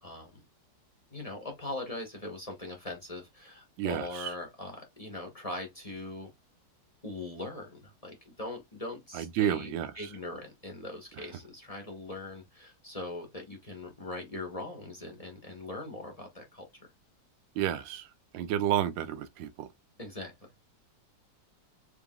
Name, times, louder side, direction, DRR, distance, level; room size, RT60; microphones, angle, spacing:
voice 1, 0.0-0.4 1.1-6.3 7.0-16.9 20.0-20.5, left 2 dB, 20° left, 1.2 m, -41 dB
voice 2, 3.8-4.3 9.1-10.1 11.2-11.3 17.5-19.7, right 11 dB, 85° right, 1.4 m, -31 dB
4.7 x 3.4 x 2.4 m
omnidirectional pair, 2.0 m